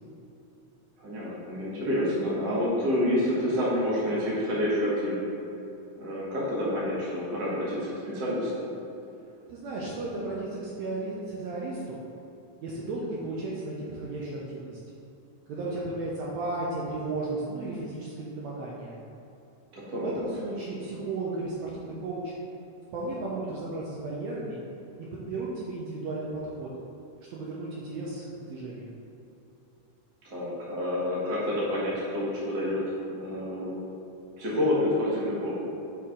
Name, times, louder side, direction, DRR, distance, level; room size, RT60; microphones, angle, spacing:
voice 1, 1.0-5.2 6.0-8.7 19.7-20.2 30.2-32.8 33.1-33.8 34.4-35.6, left 1 dB, 45° right, -7 dB, 1.6 m, -28 dB
voice 2, 9.5-12.0 12.6-14.8 15.5-19.0 20.0-22.3 22.9-24.6 25.1-26.7 27.3-28.9, right 2 dB, 75° right, -5 dB, 1.8 m, -34 dB
6.3 x 4.3 x 3.8 m, 2.8 s
omnidirectional pair, 3.4 m